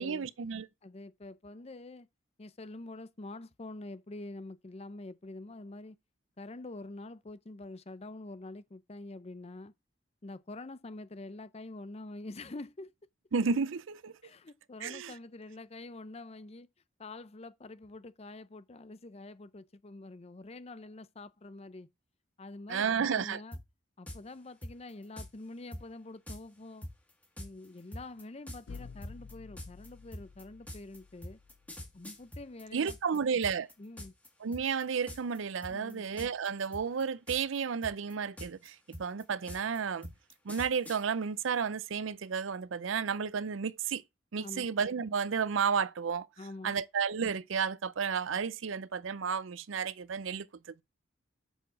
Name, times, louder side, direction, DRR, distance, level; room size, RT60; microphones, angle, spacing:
voice 1, 0.0-0.7 13.3-14.1 14.8-15.1 22.7-23.4 32.7-33.7 34.4-40.1 40.4-44.0 44.3-46.3 46.6-50.8, right 6 dB, 80° right, 0.5 m, -32 dB
voice 2, 0.8-2.1 2.4-6.0 6.4-9.7 10.2-12.9 14.2-16.7 17.0-21.9 22.4-23.6 24.0-26.9 27.4-31.4 31.9-33.4 33.8-34.1 35.7-36.0 44.4-44.7 46.4-46.7, left 2 dB, 30° left, 0.6 m, -46 dB
sound 1, 23.5-23.6 24.1-24.2 24.6-25.3 25.7-25.8 26.3-26.4 26.8-33.2 33.4-34.3 34.5-34.8 35.1-35.4 35.6-36.5 36.7-37.6 37.8-41.0, left 1 dB, 10° left, 1.9 m, -44 dB
sound 2, 28.7-32.5, left 5 dB, 85° left, 0.6 m, -51 dB
7.0 x 6.0 x 6.1 m
head